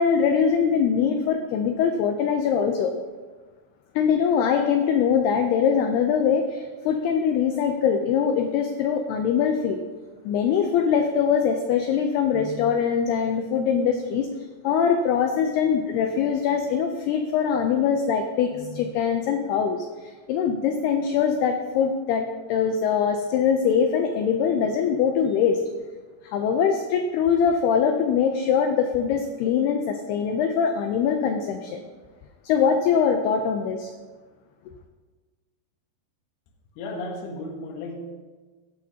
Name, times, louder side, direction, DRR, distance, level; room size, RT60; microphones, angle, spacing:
voice 1, 0.0-2.9 4.0-9.8 10.3-14.3 14.6-25.6 26.2-31.8 32.4-33.9, left 7 dB, 85° left, 5 dB, 2.3 m, -22 dB
voice 2, 36.8-38.1, left 2 dB, 70° left, 1 dB, 2.8 m, -34 dB
17.5 x 9.9 x 2.8 m, 1.3 s
omnidirectional pair, 5.4 m